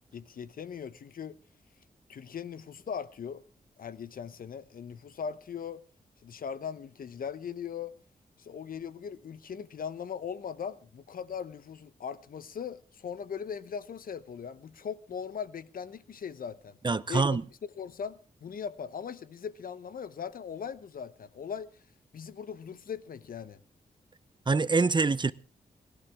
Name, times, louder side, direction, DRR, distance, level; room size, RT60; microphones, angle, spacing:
voice 1, 0.1-1.4 2.1-3.4 3.8-5.8 6.2-7.9 8.4-16.8 17.1-17.4 17.7-21.7 22.1-23.6, left 7 dB, 70° left, 0.9 m, -39 dB
voice 2, 16.8-17.4 24.5-25.3, right 4 dB, 30° right, 0.7 m, -25 dB
29.5 x 11.5 x 3.6 m
cardioid pair, 65°, 16 cm